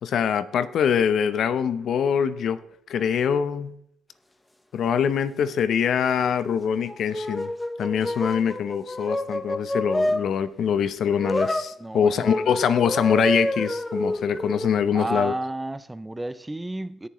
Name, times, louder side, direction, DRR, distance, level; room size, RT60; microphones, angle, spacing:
voice 1, 0.0-2.6 2.9-3.8 4.7-7.5 7.8-15.3, left 7 dB, 65° left, 0.8 m, -24 dB
sound 1, 6.7-10.3 11.2-11.7 12.2-14.7, left 1 dB, 10° left, 0.8 m, -28 dB
voice 2, 11.8-12.4 14.9-17.1, right 2 dB, 10° right, 0.5 m, -31 dB
17.5 x 7.2 x 3.1 m
cardioid pair, 90°, 0 cm